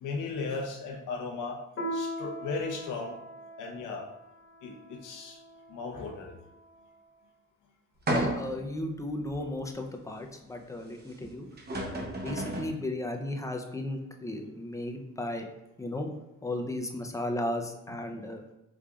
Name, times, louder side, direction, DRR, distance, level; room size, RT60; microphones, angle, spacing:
voice 1, 0.0-1.6 1.9-3.2 3.6-4.1 4.6-5.4 5.7-6.4, left 4 dB, 85° left, 1 dB, 0.9 m, -36 dB
Piano, 1.8-6.7, equal, 45° left, 1.3 m, -41 dB
voice 2, 8.1-11.5 11.9-15.5 15.8-16.1 16.4-18.4, left 1 dB, 10° left, 3 dB, 0.5 m, -35 dB
sound 1, 8.1-8.7 9.3-9.4 11.2-11.3 11.6-12.8, right 1 dB, 35° right, 1.0 m, -31 dB
5.0 x 3.5 x 2.3 m, 0.88 s
cardioid pair, 90°, 30 cm